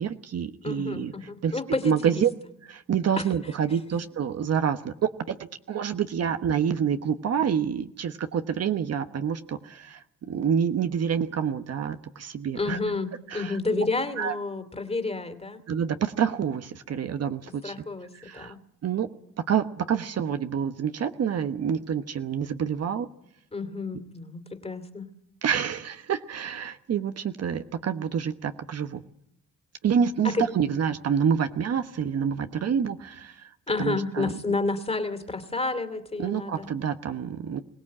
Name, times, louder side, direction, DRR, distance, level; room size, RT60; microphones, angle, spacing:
voice 1, 0.0-1.1 1.4-1.5 1.8-2.3 2.7-12.8 13.3-13.8 14.2-14.3 15.7-17.7 18.1-18.5 18.8-19.1 19.5-23.1 25.4-29.0 29.8-33.5 33.8-34.3 36.2-37.6, right 7 dB, 55° right, 8 dB, 1.2 m, -27 dB
voice 2, 0.6-2.2 3.2-3.3 12.5-15.6 17.6-18.6 23.5-25.1 30.2-30.5 33.7-36.7, left 3 dB, 20° left, 9 dB, 2.7 m, -30 dB
22.5 x 17.5 x 8.7 m, 0.76 s
cardioid pair, 90°, 30 cm